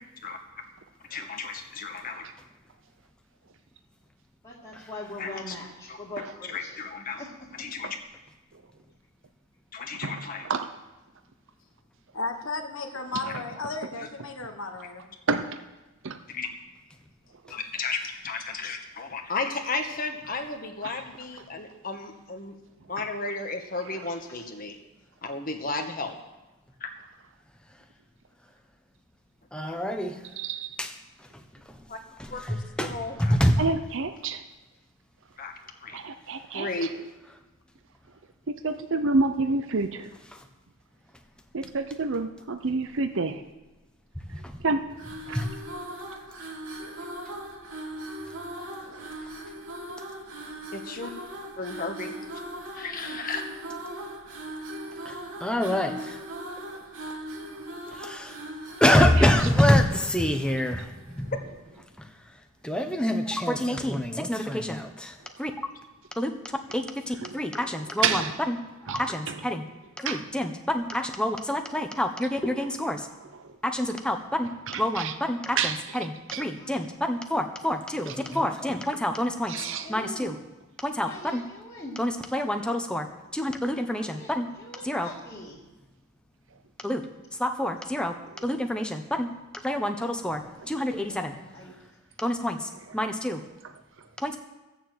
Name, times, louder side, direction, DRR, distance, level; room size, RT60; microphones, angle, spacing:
voice 1, 1.1-2.3 5.2-5.5 5.9-6.0 6.5-7.2 7.5-8.0 9.7-10.5 13.2-13.3 14.0-14.1 16.3-16.5 17.5-22.6 22.9-24.8 25.2-26.1 26.8-26.9 31.9-32.0 32.3-33.4 35.4-35.5 35.8-36.0 36.5-36.9 50.7-51.1 51.6-52.2 52.7-53.4, left 3 dB, 40° left, 4 dB, 1.4 m, -34 dB
voice 2, 4.4-6.8 7.2-7.7 24.1-24.5 52.7-53.2 76.5-77.0 77.9-78.4 79.4-80.4 81.0-82.0 83.9-85.6 90.2-91.7 94.3-94.4, left 1 dB, 25° left, -7 dB, 2.1 m, -43 dB
voice 3, 10.0-10.7 15.3-15.6 16.0-16.2 17.4-17.6 20.8-20.9 30.4-30.7 33.6-34.4 35.9-36.9 38.5-40.2 41.5-43.4 44.6-45.4 48.8-49.1 56.7-56.8 59.4-59.5 65.4-65.5 67.2-67.4 68.0-68.4 68.9-69.4 70.0-70.2 73.0-73.1 73.4-73.5 74.7-75.1 75.6-76.0 76.3-76.4 78.1-78.2 79.5-79.9, right 4 dB, 55° right, 8 dB, 0.6 m, -29 dB
voice 4, 12.1-15.1, left 3 dB, 60° left, 4 dB, 1.3 m, -34 dB
voice 5, 29.5-30.2 30.8-30.9 32.2-33.6 44.3-44.6 45.3-45.5 55.0-55.1 55.4-56.2 57.9-58.4 58.8-61.3 62.6-65.5 66.2-66.3 66.7-68.2 68.5-68.6 68.9-69.6 70.0-73.1 73.6-74.5 74.8-79.5 79.9-80.3 80.8-81.4 82.0-83.1 83.3-84.5 84.8-85.1 86.8-87.0 87.4-88.1 88.4-89.3 89.5-91.3 92.2-93.4 94.2-94.4, left 1 dB, 5° left, 5 dB, 1.0 m, -27 dB
sound 1, 44.9-61.4, right 1 dB, 80° right, 2.8 m, -40 dB
16.0 x 7.1 x 7.8 m, 1.1 s
head